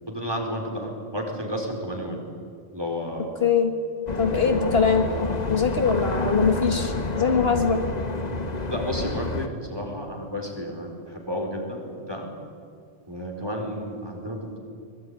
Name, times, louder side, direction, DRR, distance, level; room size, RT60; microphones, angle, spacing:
voice 1, 0.1-2.2 2.7-3.4 8.7-12.3 13.1-14.6, equal, 20° right, 1 dB, 4.8 m, -32 dB
voice 2, 3.4-3.7 4.2-5.1 5.5-7.8, left 5 dB, 50° left, 5 dB, 2.0 m, -22 dB
sound 1, 4.1-9.5, left 2 dB, 35° left, 1.5 m, -28 dB
24.5 x 21.5 x 9.8 m, 2.3 s
omnidirectional pair, 1.3 m